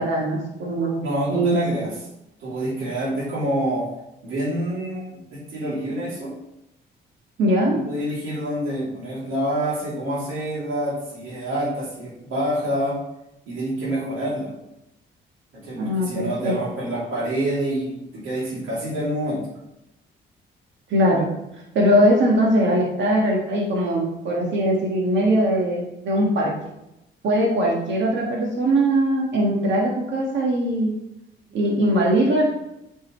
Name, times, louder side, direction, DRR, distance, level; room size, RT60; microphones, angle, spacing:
voice 1, 0.0-1.0 1.3-1.8 7.4-7.8 15.7-16.5 20.9-21.3 21.7-26.5 27.2-30.9 31.5-32.4, right 1 dB, 65° right, -2 dB, 1.7 m, -21 dB
voice 2, 1.0-1.9 2.4-3.9 4.2-6.3 7.7-13.0 13.4-14.6 15.5-19.5 31.5-31.6, right 1 dB, 85° right, -5 dB, 2.8 m, -27 dB
8.7 x 5.4 x 3.1 m, 0.87 s
cardioid pair, 90°, 20 cm